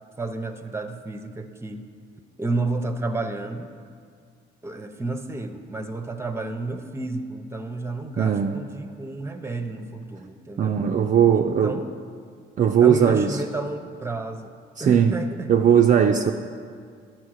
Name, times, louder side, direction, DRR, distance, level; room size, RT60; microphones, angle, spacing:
voice 1, 0.2-1.8 2.4-3.7 4.6-10.8 11.3-11.9 12.8-14.5 14.8-15.5, right 2 dB, 15° right, 7 dB, 0.7 m, -31 dB
voice 2, 8.2-8.6 10.6-11.8 12.6-13.4 14.8-15.1 15.5-16.3, right 8 dB, 40° right, 3 dB, 0.4 m, -19 dB
12.0 x 4.4 x 6.3 m, 2.1 s
cardioid pair, 90°, 20 cm